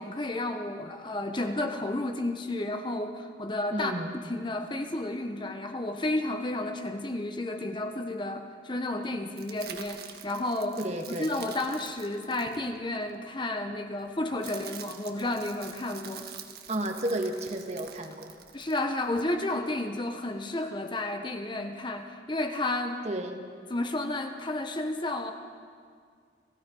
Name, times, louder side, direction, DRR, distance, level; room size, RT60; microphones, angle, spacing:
voice 1, 0.0-10.8 11.1-16.3 18.5-23.0 23.7-25.3, left 2 dB, 25° left, 6 dB, 1.0 m, -32 dB
voice 2, 3.7-4.2 10.8-11.5 16.7-18.3 23.0-23.5, right 1 dB, 35° right, 4 dB, 1.7 m, -32 dB
sound 1, 9.4-13.1 14.0-19.2, right 8 dB, 60° right, 1.5 m, -46 dB
29.0 x 16.5 x 5.4 m, 2.1 s
head